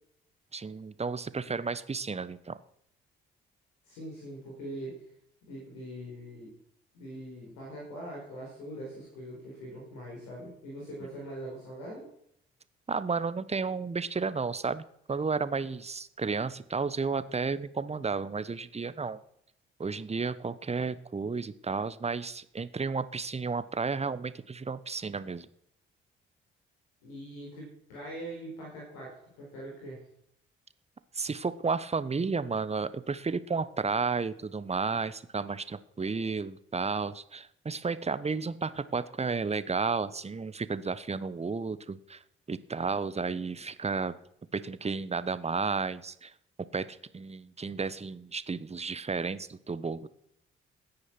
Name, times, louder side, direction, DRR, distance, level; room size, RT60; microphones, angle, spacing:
voice 1, 0.5-2.6 12.9-19.2 19.8-25.5 31.1-42.2 42.5-44.2 44.5-46.3 46.7-50.1, right 4 dB, 20° right, 15 dB, 1.1 m, -32 dB
voice 2, 3.8-5.0 5.4-6.5 6.9-12.0 27.0-30.0, right 1 dB, 70° left, -3 dB, 4.7 m, -42 dB
17.0 x 9.9 x 6.1 m, 0.73 s
figure-of-eight pair, 40°, 29 cm